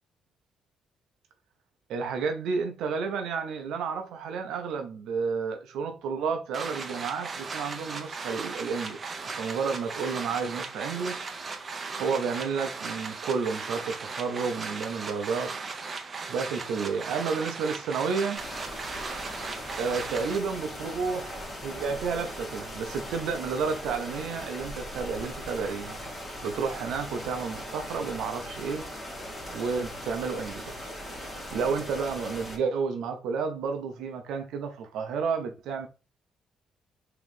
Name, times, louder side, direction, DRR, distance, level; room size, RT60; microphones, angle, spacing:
voice 1, 1.9-11.3 12.0-15.5 16.3-18.4 19.8-26.0 26.4-28.9 29.5-30.9 31.5-35.9, right 5 dB, 85° right, 0.6 m, -31 dB
sound 1, 6.5-20.4, right 4 dB, 40° right, 0.6 m, -37 dB
sound 2, 18.3-32.6, equal, 15° left, 2.1 m, -39 dB
3.6 x 2.9 x 3.5 m
cardioid pair, 90°, 0 cm